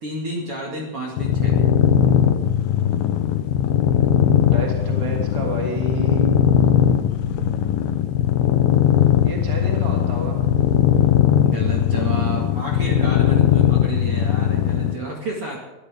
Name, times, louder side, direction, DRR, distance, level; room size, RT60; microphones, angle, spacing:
voice 1, 0.0-1.8 11.4-15.6, right 2 dB, 40° right, -2 dB, 2.5 m, -31 dB
Cat Purring, 1.2-15.0, left 10 dB, 75° left, 2.7 m, -19 dB
voice 2, 4.5-6.4 7.6-8.1 9.2-10.4, right 1 dB, 10° right, -1 dB, 2.2 m, -30 dB
22.5 x 13.0 x 3.7 m, 1.1 s
omnidirectional pair, 4.5 m